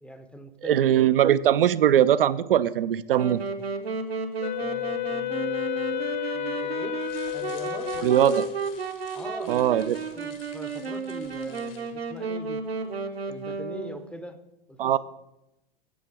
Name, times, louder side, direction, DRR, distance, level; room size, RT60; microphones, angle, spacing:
voice 1, 0.0-1.0 4.6-7.0 7.3-8.4 9.1-12.6 13.3-14.4 14.7-15.0, equal, 5° left, 8 dB, 0.6 m, -42 dB
voice 2, 0.6-3.4 8.0-8.4 9.5-10.0 14.8-15.0, right 10 dB, 65° right, 14 dB, 0.4 m, -21 dB
Wind instrument woodwind instrument, 3.1-14.1, right 5 dB, 80° right, 1.1 m, -33 dB
Wind instrument woodwind instrument 2, 4.4-8.7, left 15 dB, 50° left, 0.4 m, -32 dB
sound 1, 7.0-12.0, left 6 dB, 65° left, 1.7 m, -50 dB
8.4 x 7.8 x 4.8 m, 0.88 s
figure-of-eight pair, 100°, 30 cm